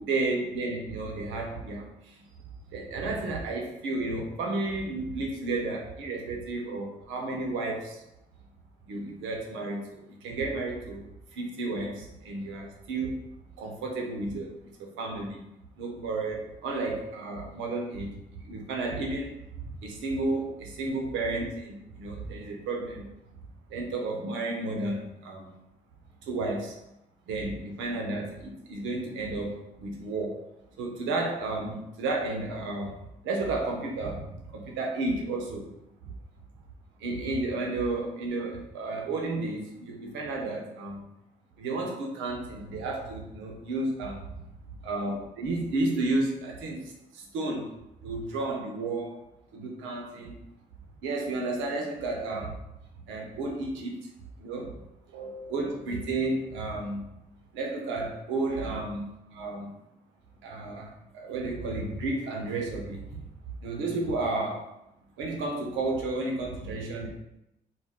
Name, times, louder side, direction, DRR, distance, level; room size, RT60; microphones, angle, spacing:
voice 1, 0.0-2.2 2.7-8.0 8.9-13.2 13.6-14.5 14.8-15.4 15.8-19.3 19.6-23.0 23.7-25.5 26.2-26.8 27.3-30.4 30.8-32.9 33.2-35.7 37.0-41.0 41.6-44.3 44.8-47.7 48.0-49.2 49.5-50.4 51.0-52.6 53.1-54.1 54.4-54.8 55.1-57.0 57.5-59.0 59.3-59.7 60.4-63.3 63.6-64.7 65.2-67.1, right 2 dB, 75° right, 1 dB, 0.6 m, -32 dB
2.3 x 2.1 x 3.5 m, 0.86 s
hypercardioid pair, 50°, 20 cm